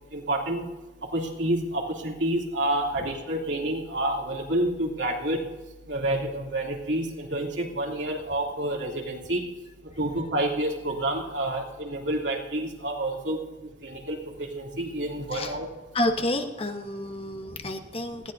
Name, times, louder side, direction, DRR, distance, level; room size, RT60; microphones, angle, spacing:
voice 1, 0.1-0.7 1.1-5.5 5.9-9.5 10.0-13.4 13.8-15.7, right 1 dB, 80° right, -1 dB, 2.9 m, -28 dB
voice 2, 15.9-18.3, left 1 dB, 30° left, 5 dB, 1.1 m, -29 dB
19.0 x 16.0 x 2.7 m, 1.1 s
head